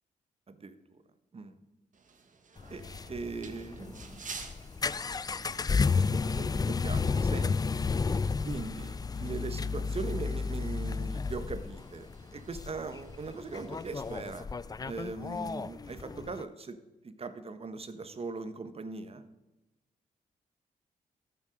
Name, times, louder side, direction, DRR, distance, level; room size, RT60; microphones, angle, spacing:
voice 1, 0.5-1.0 1.3-1.5 2.7-2.8 3.1-4.3 6.0-7.5 8.4-14.5 14.8-16.8 17.0-19.2, right 4 dB, 40° right, 10 dB, 1.1 m, -40 dB
sound 1, 1.9-14.4, right 5 dB, 55° right, 1.4 m, -53 dB
sound 2, 2.6-16.4, left 4 dB, 25° left, 0.4 m, -32 dB
13.0 x 7.2 x 5.1 m, 1.0 s
cardioid pair, 70°, 15 cm